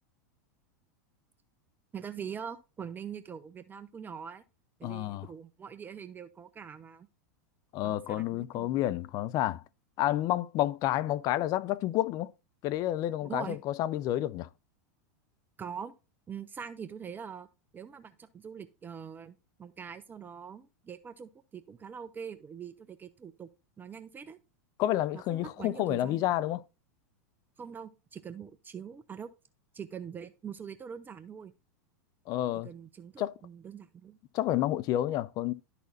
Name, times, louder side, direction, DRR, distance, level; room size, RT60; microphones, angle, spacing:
voice 1, 1.9-4.4 4.8-7.1 7.8-8.8 13.2-13.6 15.6-15.9 16.3-17.5 17.7-23.5 23.8-24.4 25.1-26.2 27.6-29.3 29.7-31.5 32.6-34.2, right 7 dB, 20° right, 0.6 m, -43 dB
voice 2, 4.8-5.3 7.7-9.6 10.0-12.3 12.6-14.5 24.8-26.6 32.3-32.7 33.2-33.3 34.3-35.5, left 13 dB, 45° left, 0.5 m, -30 dB
12.0 x 4.2 x 3.9 m
hypercardioid pair, 105°, 9 cm